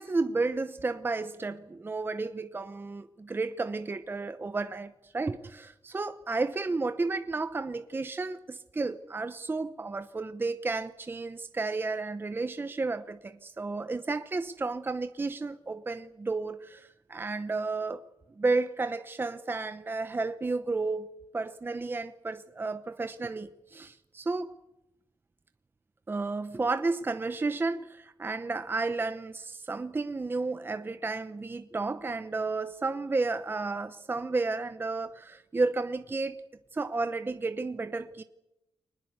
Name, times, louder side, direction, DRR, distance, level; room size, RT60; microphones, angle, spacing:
voice 1, 0.0-18.0 18.4-24.5 26.1-36.4 36.7-38.2, right 3 dB, 25° right, 0.9 m, -32 dB
24.0 x 20.0 x 8.0 m
wide cardioid pair, 135°, 9 cm